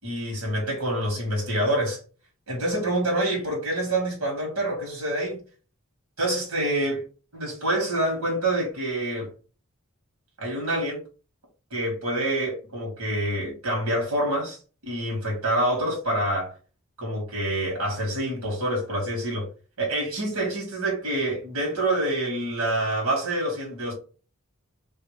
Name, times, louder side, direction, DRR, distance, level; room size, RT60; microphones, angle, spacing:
voice 1, 0.0-2.0 2.5-5.4 6.2-7.0 7.3-9.3 10.4-11.0 11.7-14.6 14.8-16.5 17.0-19.5 19.8-23.9, right 1 dB, 75° right, 2.0 m, -26 dB
3.6 x 3.4 x 3.3 m
head